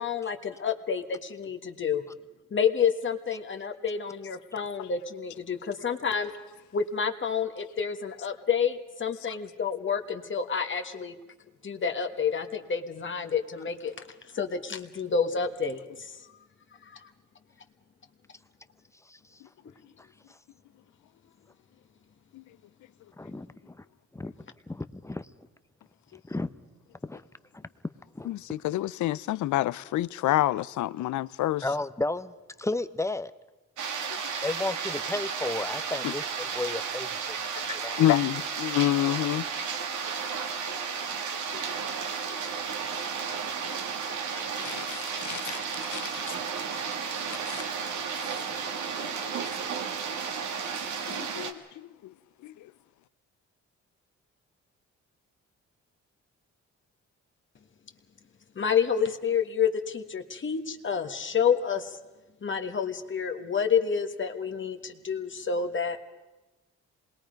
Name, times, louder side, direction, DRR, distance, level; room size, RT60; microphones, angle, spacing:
voice 1, 0.0-2.0 2.5-6.3 6.7-11.1 11.6-13.9 14.3-16.3 16.8-17.1 58.5-62.0 62.4-66.0, left 6 dB, 40° left, 1.5 m, -29 dB
voice 2, 23.2-23.8 24.1-24.3 24.7-25.3 26.3-26.5 27.0-27.2 28.1-28.3 31.6-32.3 32.6-33.3 34.4-37.2 37.7-38.0, left 2 dB, 10° left, 0.8 m, -33 dB
voice 3, 28.3-31.6 34.1-34.2 36.0-36.1 37.7-39.5 40.7-40.8 41.5-41.6 44.3-46.4 47.5-47.6 49.0-49.1 51.1-52.1 52.4-52.5, left 14 dB, 75° left, 0.6 m, -29 dB
sound 1, 33.8-51.5, right 6 dB, 75° right, 1.8 m, -33 dB
26.5 x 21.0 x 5.2 m
cardioid pair, 90°, 30 cm